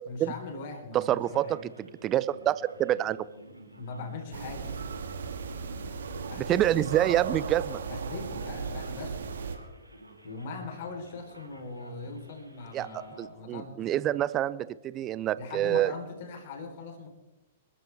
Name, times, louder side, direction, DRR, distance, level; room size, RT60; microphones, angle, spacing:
voice 1, 0.1-1.6 3.7-4.8 6.3-6.6 7.9-9.2 10.2-13.9 15.4-17.1, left 4 dB, 45° left, 5 dB, 3.6 m, -40 dB
voice 2, 0.9-1.5 1.8-3.3 6.5-7.8 12.7-12.9 13.2-15.9, right 12 dB, 25° right, 18 dB, 0.7 m, -27 dB
Male speech man speaking, 1.3-13.2, right 1 dB, 85° right, 3.2 m, -51 dB
sound 1, 4.3-9.6, right 5 dB, 60° right, 2.4 m, -36 dB
28.0 x 14.0 x 3.4 m, 0.99 s
figure-of-eight pair, 105°, 0 cm